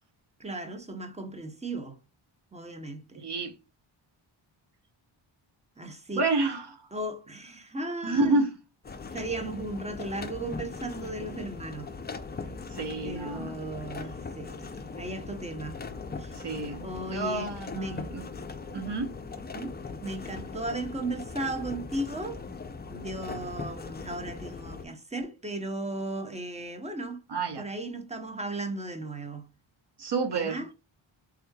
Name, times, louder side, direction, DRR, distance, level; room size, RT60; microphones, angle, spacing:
voice 1, 0.4-2.0 2.5-3.3 5.8-6.3 6.9-8.4 9.1-11.9 13.0-15.8 16.2-16.3 16.8-18.1 19.5-22.4 22.9-27.2 27.6-29.5 30.3-30.7, right 2 dB, 15° right, 0.7 m, -36 dB
voice 2, 3.2-3.5 6.2-6.8 8.0-8.5 12.7-13.6 16.3-18.3 18.7-19.1 27.3-27.7 30.0-30.6, right 3 dB, 55° right, 0.9 m, -29 dB
sound 1, 8.8-24.8, left 4 dB, 20° left, 0.4 m, -40 dB
3.6 x 3.0 x 2.2 m
cardioid pair, 75°, 49 cm